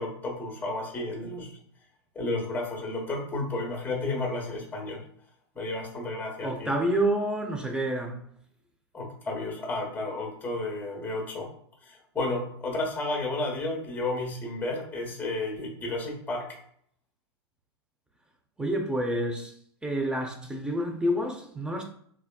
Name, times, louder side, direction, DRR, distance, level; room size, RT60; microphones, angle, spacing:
voice 1, 0.0-1.6 2.1-5.0 5.5-6.7 8.9-11.5 11.8-16.5, left 2 dB, 15° left, 1.2 m, -32 dB
voice 2, 6.4-8.2 18.6-19.5 19.8-21.8, right 1 dB, 5° right, 0.6 m, -28 dB
3.4 x 3.4 x 2.2 m
figure-of-eight pair, 100°, 14 cm